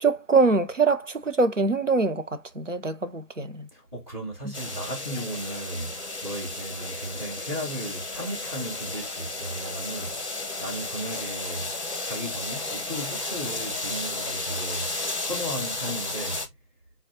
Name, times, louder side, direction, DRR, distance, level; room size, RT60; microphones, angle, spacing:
voice 1, 0.0-2.2 2.6-3.7, right 4 dB, 50° right, 0.5 m, -23 dB
voice 2, 3.7-10.2 10.6-11.7 12.0-14.9 15.2-16.5, right 1 dB, 15° right, 2.4 m, -35 dB
sound 1, 4.5-16.5, left 2 dB, 45° left, 0.8 m, -33 dB
6.8 x 2.3 x 2.7 m
figure-of-eight pair, 165°, 49 cm